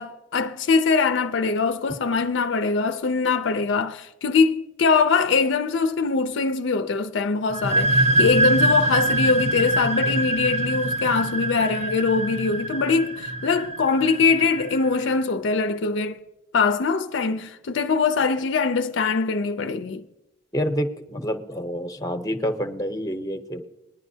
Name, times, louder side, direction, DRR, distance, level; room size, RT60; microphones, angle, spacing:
voice 1, 0.0-16.2 16.5-20.1, left 4 dB, 60° left, 0.5 m, -22 dB
sound 1, 7.5-15.0, right 2 dB, 35° right, 0.4 m, -24 dB
voice 2, 20.5-23.6, equal, 20° left, 0.8 m, -28 dB
20.0 x 10.5 x 2.7 m
head